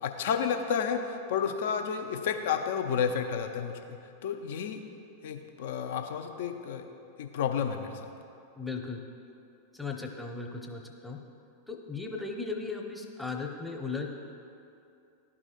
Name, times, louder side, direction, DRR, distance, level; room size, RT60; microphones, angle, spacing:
voice 1, 0.0-4.8 5.2-6.9 7.2-8.1, left 7 dB, 55° left, 6 dB, 0.5 m, -31 dB
voice 2, 8.6-9.0 9.7-11.2 11.7-14.1, left 4 dB, 5° left, 1 dB, 0.7 m, -36 dB
12.0 x 4.8 x 2.4 m, 2.6 s
figure-of-eight pair, 90°, 0 cm